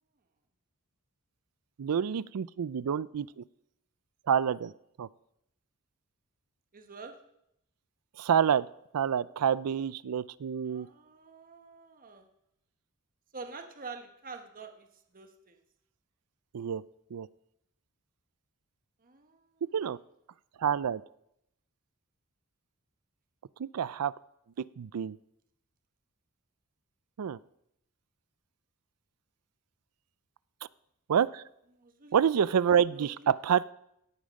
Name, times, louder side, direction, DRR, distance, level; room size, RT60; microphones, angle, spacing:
voice 1, 1.8-3.4 4.3-4.7 5.0-5.1 8.2-8.7 8.9-10.9 16.5-16.8 17.1-17.3 19.7-20.0 20.6-21.0 23.6-24.1 24.6-25.2 27.2-27.4 31.1-31.4 32.1-33.7, right 8 dB, 85° right, 20 dB, 0.4 m, -28 dB
voice 2, 6.7-7.1 10.7-12.3 13.3-14.9 15.1-15.6 19.0-19.5 31.7-32.5 32.9-33.3, right 4 dB, 40° right, 6 dB, 1.2 m, -47 dB
17.0 x 8.7 x 5.3 m, 0.79 s
head